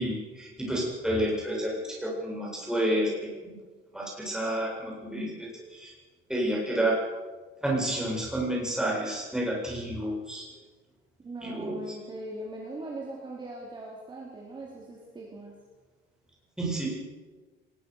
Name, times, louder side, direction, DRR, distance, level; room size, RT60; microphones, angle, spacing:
voice 1, 0.0-3.1 3.4-3.5 3.9-5.9 6.3-7.0 7.6-10.4 11.4-11.8 16.6-17.0, right 1 dB, 5° right, -3 dB, 7.8 m, -30 dB
voice 2, 11.2-15.5, right 2 dB, 20° right, -3 dB, 4.2 m, -40 dB
22.5 x 21.0 x 6.7 m, 1.3 s
cardioid pair, 160°, 21 cm